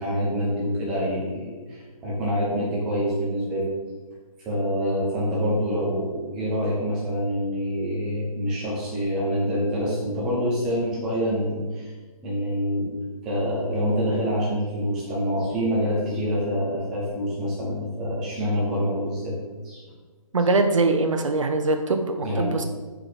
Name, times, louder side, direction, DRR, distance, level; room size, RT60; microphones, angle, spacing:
voice 1, 0.0-3.7 4.4-11.9 12.2-13.0 13.2-19.4 19.6-19.8 22.2-22.6, equal, 5° right, -6 dB, 0.5 m, -26 dB
voice 2, 20.3-22.6, right 3 dB, 60° right, 5 dB, 0.7 m, -22 dB
5.9 x 4.7 x 5.0 m, 1.3 s
hypercardioid pair, 165°, 18 cm